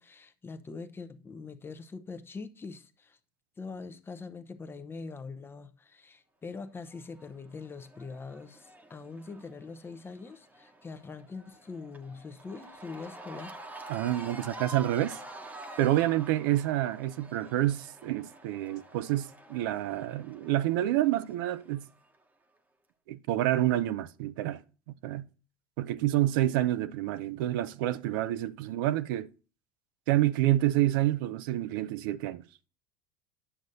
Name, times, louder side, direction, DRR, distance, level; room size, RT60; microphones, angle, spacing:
voice 1, 0.0-3.2 3.6-13.6, left 4 dB, 20° left, 0.7 m, -43 dB
Cheering / Crowd, 6.9-22.1, right 1 dB, 15° right, 1.1 m, -48 dB
voice 2, 13.9-15.2 15.8-21.9 23.1-24.6 24.9-25.3 25.8-29.3 30.1-32.4, right 14 dB, 75° right, 0.5 m, -28 dB
9.9 x 6.2 x 2.6 m
hypercardioid pair, 95°, 11 cm